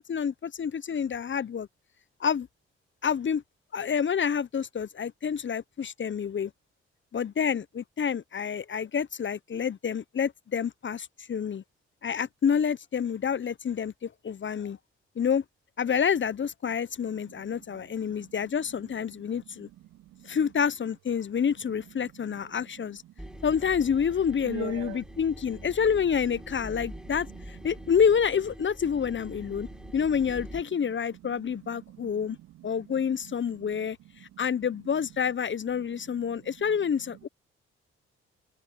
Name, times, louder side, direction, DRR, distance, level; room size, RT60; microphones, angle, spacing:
voice 1, 0.1-1.7 2.2-2.5 3.0-3.4 3.7-6.5 7.1-11.6 12.0-14.8 15.2-15.4 15.8-19.7 20.2-23.0 23.4-29.7 29.9-32.4 32.6-37.3, left 7 dB, 40° left, 0.8 m, -28 dB
voice 2, 17.7-18.4 19.2-19.4 19.8-20.4 22.4-23.4 24.4-25.0 25.5-25.7 26.7-27.7 29.6-29.9 30.8-33.8 34.2-34.5 35.7-36.5, right 15 dB, 80° right, 2.0 m, -47 dB
sound 1, 23.2-30.6, equal, ahead, 5.2 m, -44 dB
hypercardioid pair, 45°, 29 cm